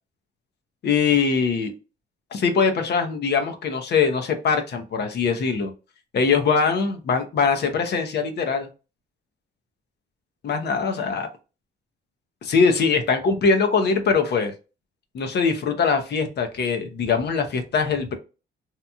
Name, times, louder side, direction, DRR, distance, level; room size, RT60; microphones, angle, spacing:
voice 1, 0.8-1.7 2.3-5.7 6.1-8.7 10.4-11.3 12.4-14.5 15.1-18.2, left 5 dB, 55° left, 6 dB, 0.7 m, -22 dB
2.9 x 2.5 x 2.2 m, 0.31 s
cardioid pair, 90°, 20 cm